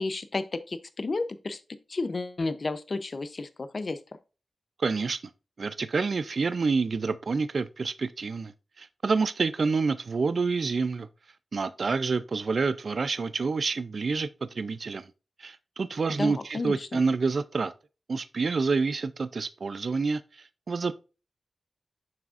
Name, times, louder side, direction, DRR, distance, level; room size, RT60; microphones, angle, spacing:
voice 1, 0.0-1.6 1.9-4.0 16.1-17.0, left 3 dB, 45° left, 0.7 m, -32 dB
voice 2, 4.8-5.2 5.6-8.5 8.8-11.1 11.5-15.1 15.4-17.7 18.1-20.9, right 4 dB, 55° right, 0.4 m, -28 dB
7.4 x 6.0 x 2.5 m
wide cardioid pair, 105°, 0 cm